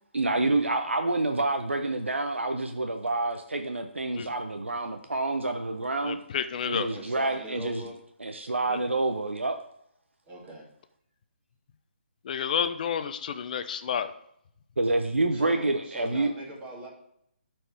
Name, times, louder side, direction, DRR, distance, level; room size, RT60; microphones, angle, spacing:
voice 1, 0.1-6.2 6.6-7.8 8.2-9.6 14.8-16.3, right 2 dB, 90° right, 5 dB, 0.8 m, -28 dB
voice 2, 6.0-6.9 8.7-8.8 12.2-14.1, left 7 dB, 40° left, 10 dB, 0.6 m, -30 dB
voice 3, 6.9-7.9 10.3-10.6 15.3-16.9, right 1 dB, 20° right, -4 dB, 2.6 m, -41 dB
12.5 x 4.5 x 3.4 m, 0.73 s
figure-of-eight pair, 145°, 6 cm